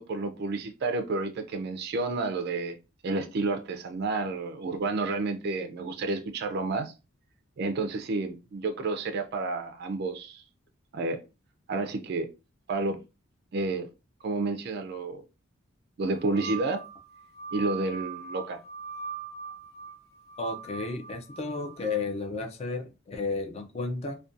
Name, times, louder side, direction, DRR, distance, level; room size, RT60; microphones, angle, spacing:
voice 1, 0.0-2.8 3.0-6.9 7.6-10.4 10.9-11.2 11.7-12.3 12.7-13.0 13.5-13.9 14.2-15.2 16.0-16.8 17.5-18.6, right 3 dB, 50° right, 0.3 m, -30 dB
sound 1, 16.0-22.0, right 5 dB, 55° left, 0.8 m, -41 dB
voice 2, 20.4-24.2, left 3 dB, 30° left, 0.4 m, -33 dB
2.5 x 2.2 x 2.4 m
head